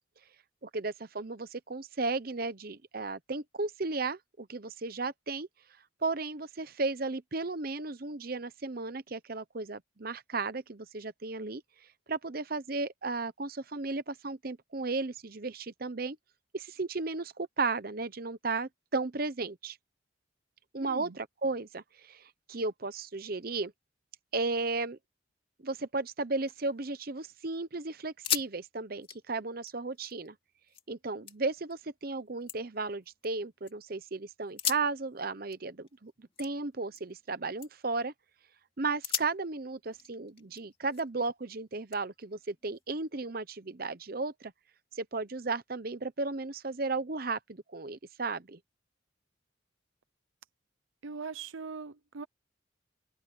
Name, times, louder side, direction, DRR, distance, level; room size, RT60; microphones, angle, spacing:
voice 1, 0.6-5.5 6.0-11.6 12.1-16.2 16.5-19.8 20.7-23.7 24.3-25.0 25.6-30.4 30.9-38.1 38.8-44.5 44.9-48.6, right 3 dB, 50° right, 0.9 m, -34 dB
voice 2, 20.8-21.2 51.0-52.3, right 5 dB, 80° right, 0.6 m, -41 dB
sound 1, 26.2-27.3 27.6-27.7 28.1-28.5 28.8-30.9 31.3-31.8 32.2-33.7 34.4-37.3 37.6-38.0 38.4-38.6 39.0-41.3 41.9-43.1, left 8 dB, 30° left, 2.6 m, -39 dB
head